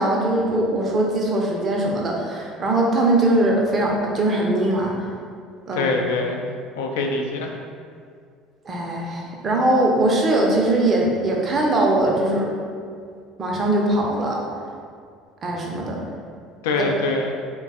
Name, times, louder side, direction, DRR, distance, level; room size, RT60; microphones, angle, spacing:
voice 1, 0.0-4.9 5.7-5.9 8.7-12.5 13.4-14.4 15.4-16.0 16.8-16.9, right 1 dB, 30° right, -1 dB, 0.6 m, -21 dB
voice 2, 5.7-6.4 6.7-7.5 16.6-17.4, left 3 dB, 65° left, 2 dB, 0.4 m, -24 dB
3.8 x 2.2 x 3.7 m, 2.2 s
figure-of-eight pair, 60°, 0 cm